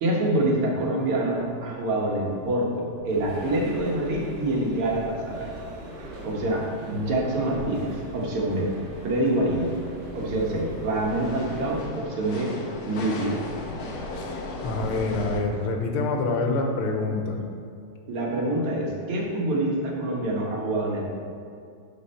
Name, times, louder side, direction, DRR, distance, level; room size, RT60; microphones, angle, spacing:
voice 1, 0.0-5.6 6.2-8.7 9.0-9.7 10.1-12.5 12.9-13.4 18.1-21.0, right 1 dB, 85° right, -2 dB, 2.2 m, -26 dB
sound 1, 1.1-1.2 1.4-1.5 1.8-2.0 2.4-2.6 5.6-5.7 6.2-15.4, left 2 dB, 55° left, 1.1 m, -38 dB
sound 2, 3.1-11.8, right 1 dB, 65° right, 1.9 m, -41 dB
voice 2, 14.1-17.5, left 3 dB, 85° left, 2 dB, 1.8 m, -27 dB
11.5 x 4.1 x 4.3 m, 2.4 s
omnidirectional pair, 2.3 m